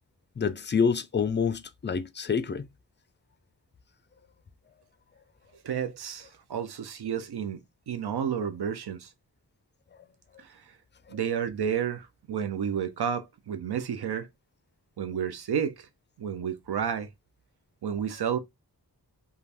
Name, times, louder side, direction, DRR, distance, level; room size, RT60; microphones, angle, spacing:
voice 1, 0.4-2.6, left 6 dB, 30° left, 0.4 m, -27 dB
voice 2, 5.6-7.6 7.9-9.1 10.4-10.6 11.1-14.3 15.0-15.9 16.2-17.1 17.8-18.4, right 8 dB, 75° right, 0.6 m, -31 dB
2.5 x 2.3 x 3.3 m
wide cardioid pair, 50°, 39 cm